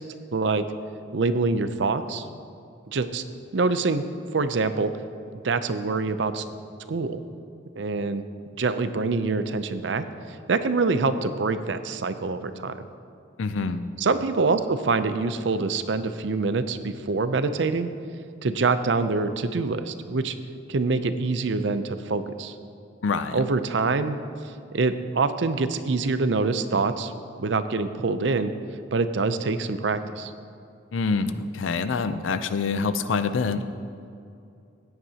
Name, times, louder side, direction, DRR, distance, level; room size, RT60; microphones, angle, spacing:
voice 1, 0.3-0.6 1.1-2.2 2.9-3.2 3.5-4.0 4.3-4.9 5.4-6.4 6.9-7.2 7.8-8.2 8.6-10.0 10.5-12.8 14.0-17.9 18.4-20.3 20.7-22.5 23.3-24.2 24.7-27.1 27.4-28.5 28.9-30.3, right 3 dB, 70° right, 11 dB, 0.5 m, -25 dB
voice 2, 13.4-13.8 23.0-23.5 30.9-33.6, left 4 dB, 90° left, 11 dB, 0.5 m, -26 dB
16.5 x 9.5 x 2.9 m, 2.5 s
head